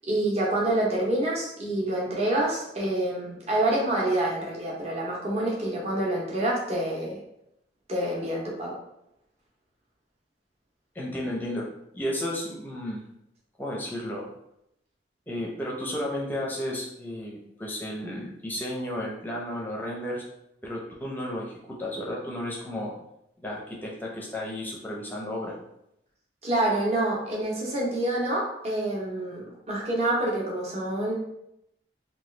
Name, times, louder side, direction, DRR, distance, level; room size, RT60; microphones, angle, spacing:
voice 1, 0.1-7.2 7.9-8.8 26.4-31.1, right 1 dB, 35° right, -4 dB, 0.8 m, -27 dB
voice 2, 10.9-11.7 11.9-13.0 13.6-14.3 15.3-20.2 20.6-22.9 23.4-25.6, left 1 dB, 10° left, -3 dB, 0.5 m, -33 dB
2.9 x 2.3 x 3.1 m, 0.81 s
head